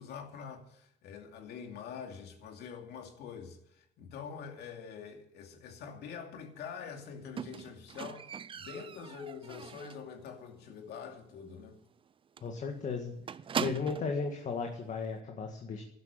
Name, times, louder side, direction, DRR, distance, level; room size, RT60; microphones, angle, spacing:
voice 1, 0.0-11.8, left 6 dB, 75° left, 2.7 m, -45 dB
Squeak, 7.4-10.1 10.5-10.9 11.1-11.2 11.6-11.7 12.0-12.1 12.4-14.2 15.0-15.1, right 7 dB, 30° right, 0.5 m, -40 dB
voice 2, 12.4-13.1 13.6-15.8, left 5 dB, 45° left, 2.0 m, -35 dB
12.0 x 12.0 x 8.9 m
cardioid pair, 110°, 17 cm